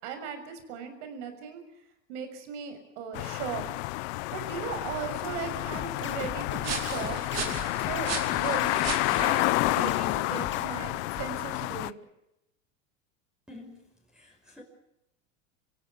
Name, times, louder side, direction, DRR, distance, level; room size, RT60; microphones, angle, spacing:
voice 1, 0.0-1.6 2.1-3.7 4.3-7.4 7.8-8.9 9.2-12.0, right 7 dB, 70° right, 8 dB, 6.5 m, -38 dB
sound 1, 3.1-11.9, left 22 dB, 65° left, 0.8 m, -30 dB
sound 2, 4.2-11.6, right 7 dB, 45° right, 4.6 m, -39 dB
sound 3, 5.7-10.7, left 9 dB, 30° left, 1.8 m, -38 dB
voice 2, 13.5-13.8 14.1-14.6, left 2 dB, ahead, 0 dB, 5.8 m, -48 dB
27.5 x 16.5 x 8.4 m, 0.85 s
supercardioid pair, 115°, 37 cm